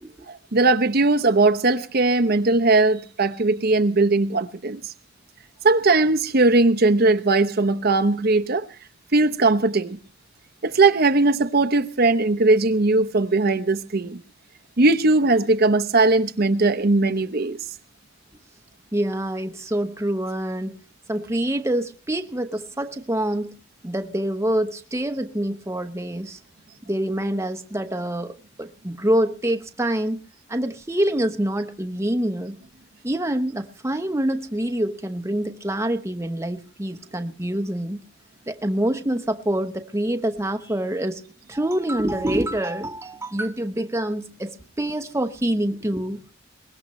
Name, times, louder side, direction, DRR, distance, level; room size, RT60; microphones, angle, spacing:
voice 1, 0.3-4.8 5.6-8.6 9.1-10.0 10.6-14.2 14.8-17.6, right 3 dB, 50° right, 0.8 m, -19 dB
voice 2, 18.9-20.8 21.1-23.5 23.8-26.4 26.8-30.2 30.5-32.6 33.0-38.0 38.5-41.2 41.5-46.2, right 1 dB, 15° right, 0.9 m, -26 dB
23.0 x 20.0 x 3.1 m
head